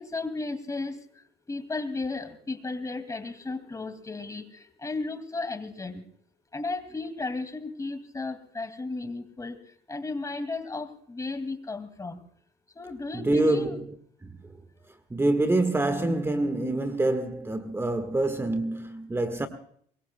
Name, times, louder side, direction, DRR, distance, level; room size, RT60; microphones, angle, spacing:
voice 1, 0.0-6.0 6.5-12.2 12.7-13.8, left 3 dB, 20° left, 2.2 m, -34 dB
voice 2, 13.1-13.9 14.2-14.6 15.1-19.5, right 2 dB, 15° right, 1.5 m, -26 dB
24.0 x 22.0 x 2.2 m
cardioid pair, 110°, 17 cm